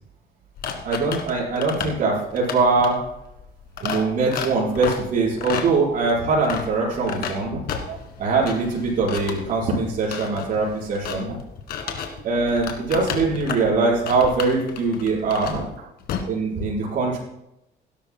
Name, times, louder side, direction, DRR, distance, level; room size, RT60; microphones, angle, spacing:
sound 1, 0.6-12.2 12.5-13.7 14.1-16.2, left 7 dB, 70° left, 1.6 m, -33 dB
voice 1, 0.8-3.0 3.8-7.6 8.2-11.3 12.2-15.7 16.3-17.2, right 3 dB, 55° right, -6 dB, 5.1 m, -22 dB
voice 2, 4.1-4.5 7.9-8.3 11.8-12.3 14.0-14.3 15.3-15.9 17.1-17.2, right 9 dB, 70° right, 7 dB, 1.4 m, -43 dB
17.5 x 11.5 x 2.2 m, 0.83 s
cardioid pair, 110°, 17 cm